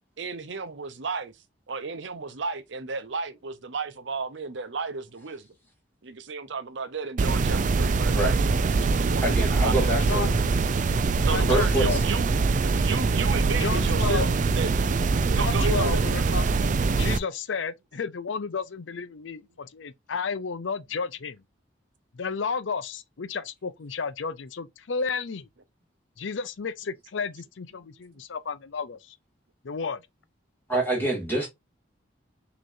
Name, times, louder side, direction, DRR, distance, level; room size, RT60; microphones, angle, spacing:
voice 1, 0.2-1.3 1.7-5.5 6.0-9.2 9.6-9.7 11.3-12.3 12.8-14.7 15.3-16.1, right 4 dB, 70° right, 0.7 m, -33 dB
sound 1, 7.2-17.2, right 4 dB, 40° right, 0.4 m, -23 dB
voice 2, 9.2-10.4 11.5-12.0 30.7-31.5, right 1 dB, 10° left, 2.2 m, -26 dB
voice 3, 9.8-10.3 11.3-12.0 13.6-14.3 15.3-16.4 16.9-21.4 22.1-25.5 26.2-29.2 29.6-30.0, left 5 dB, 80° left, 0.6 m, -32 dB
6.2 x 3.0 x 2.6 m
head